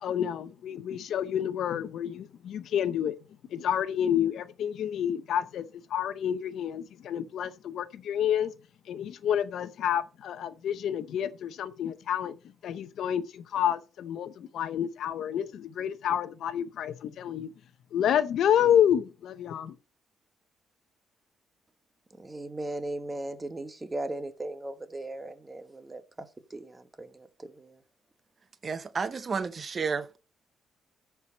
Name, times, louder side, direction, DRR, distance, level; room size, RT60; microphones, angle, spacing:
voice 1, 0.0-3.2 3.5-5.6 5.9-8.5 8.9-12.4 12.6-17.5 17.9-19.8, left 9 dB, 70° left, 0.6 m, -29 dB
voice 2, 22.2-27.8, right 2 dB, 20° right, 1.2 m, -38 dB
voice 3, 28.6-30.2, right 5 dB, 40° right, 0.6 m, -31 dB
13.5 x 4.7 x 4.1 m
cardioid pair, 90°, 0 cm